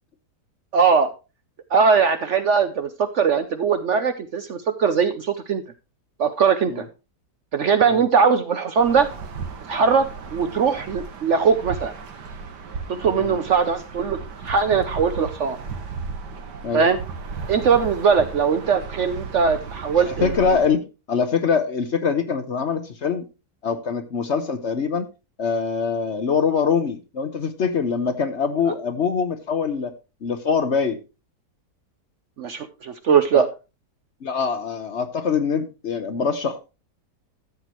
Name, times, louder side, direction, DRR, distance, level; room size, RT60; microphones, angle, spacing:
voice 1, 0.7-1.1 1.7-5.6 6.2-6.8 7.5-9.1 9.7-11.9 12.9-14.2 14.4-15.6 16.7-17.0 17.5-20.3 32.4-33.5, right 6 dB, 60° right, 0.8 m, -20 dB
sound 1, 8.8-20.7, right 5 dB, 90° right, 1.9 m, -35 dB
voice 2, 20.0-23.2 23.6-25.1 25.4-29.9 30.2-31.0 33.3-33.4 34.2-36.6, left 6 dB, 50° left, 1.0 m, -24 dB
13.5 x 7.8 x 3.0 m
omnidirectional pair, 1.8 m